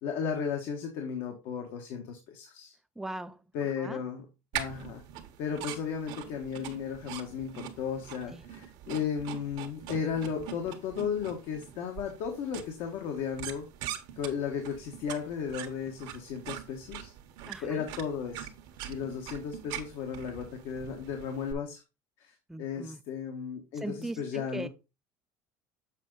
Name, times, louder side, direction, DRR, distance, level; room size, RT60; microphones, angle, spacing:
voice 1, 0.0-2.7 3.5-4.3 4.5-5.0 5.4-13.7 14.1-17.1 17.6-18.5 18.9-21.8 22.2-22.3 22.6-24.7, left 7 dB, 65° left, 1.4 m, -35 dB
voice 2, 3.0-3.4 3.8-4.0 8.3-8.5 17.5-17.9 22.5-23.0 23.8-24.7, right 2 dB, 5° right, 0.5 m, -39 dB
sound 1, 4.5-21.5, right 11 dB, 65° right, 1.3 m, -43 dB
7.4 x 5.0 x 3.9 m
cardioid pair, 135°, 9 cm